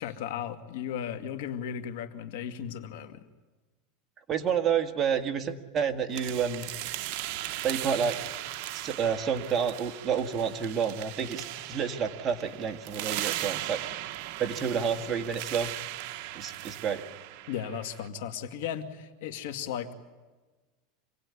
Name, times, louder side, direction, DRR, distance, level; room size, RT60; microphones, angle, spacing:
voice 1, 0.0-3.2 17.5-19.9, left 9 dB, 75° left, 8 dB, 2.2 m, -36 dB
voice 2, 4.3-6.7 7.6-8.2 8.7-13.8 14.4-15.7 16.3-17.0, right 7 dB, 25° right, 5 dB, 1.8 m, -29 dB
sound 1, 6.1-18.1, right 15 dB, 55° right, 1.0 m, -38 dB
27.0 x 18.0 x 9.8 m, 1.3 s
supercardioid pair, 145°, 0 cm